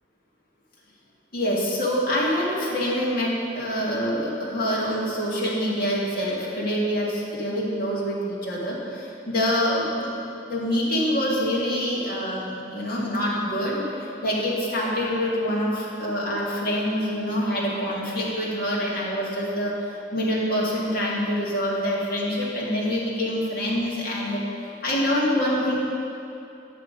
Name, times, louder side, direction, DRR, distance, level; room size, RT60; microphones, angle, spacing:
voice 1, 1.3-10.1 10.5-19.8 20.1-24.4 24.8-25.8, equal, 55° left, -6 dB, 2.1 m, -25 dB
9.5 x 6.5 x 5.2 m, 2.8 s
head